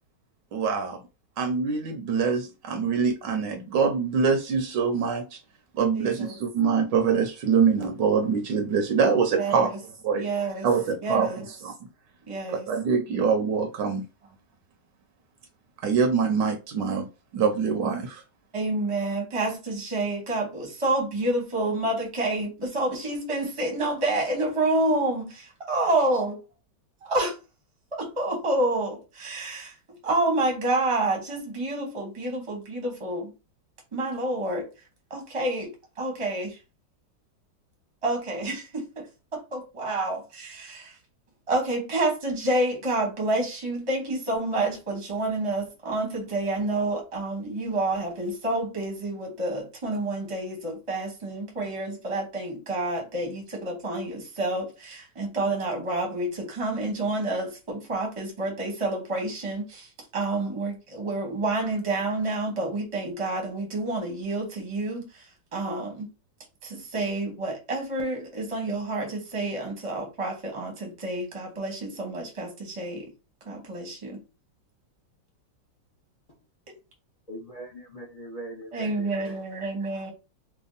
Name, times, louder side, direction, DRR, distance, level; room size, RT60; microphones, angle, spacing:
voice 1, 0.5-1.0 1.4-5.4 5.7-9.7 10.0-10.3 10.6-11.7 12.7-14.0 15.8-17.1 17.3-18.2, right 6 dB, 75° right, 1.2 m, -24 dB
voice 2, 5.9-6.4 9.4-9.8 10.1-10.7 11.0-11.4 12.3-12.7 18.5-26.4 27.0-27.3 27.9-33.3 33.9-34.7 35.1-35.7 36.0-36.6 38.0-39.0 39.3-40.9 41.5-65.3 65.5-66.1 66.6-73.1 73.5-74.2 76.7-76.8 78.7-80.1, right 2 dB, 25° right, 0.8 m, -28 dB
voice 3, 77.3-79.6 79.9-80.0, right 1 dB, 55° left, 0.4 m, -41 dB
3.4 x 2.2 x 3.9 m
omnidirectional pair, 2.0 m